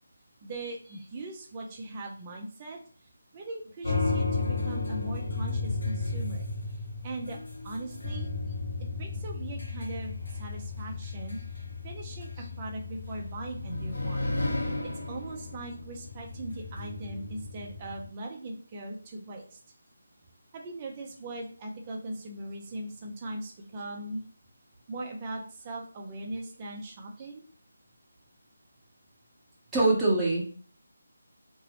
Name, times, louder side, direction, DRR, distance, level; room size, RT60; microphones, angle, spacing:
voice 1, 0.4-2.8 3.3-6.4 7.0-7.4 7.6-8.3 9.0-19.6 20.5-24.2 24.9-27.4, right 2 dB, 25° right, 1 dB, 0.6 m, -40 dB
sound 1, 3.8-18.0, left 3 dB, 75° left, 1.3 m, -34 dB
voice 2, 29.7-30.5, right 2 dB, 5° right, -7 dB, 1.0 m, -24 dB
2.9 x 2.7 x 2.9 m, 0.43 s
figure-of-eight pair, 165°, 0 cm